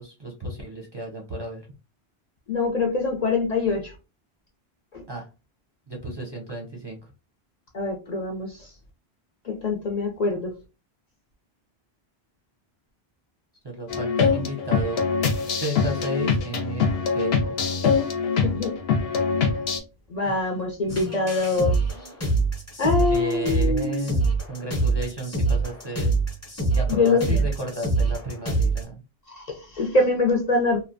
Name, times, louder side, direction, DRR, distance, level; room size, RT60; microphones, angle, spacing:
voice 1, 0.0-1.6 5.1-5.2 5.9-7.0 13.6-15.0 15.5-16.8 17.1-17.6 23.0-26.1 26.7-29.0, right 1 dB, 30° right, -1 dB, 0.5 m, -33 dB
voice 2, 2.5-3.9 4.9-5.0 7.7-8.7 9.4-10.5 18.4-18.8 20.1-21.8 22.8-24.1 26.9-27.5 29.3-30.8, left 3 dB, 50° left, 1 dB, 0.5 m, -24 dB
sound 1, 13.9-19.8, left 5 dB, 80° left, 0.8 m, -24 dB
sound 2, 20.9-28.8, right 3 dB, 20° left, 0.7 m, -25 dB
2.7 x 2.1 x 2.5 m, 0.30 s
omnidirectional pair, 1.1 m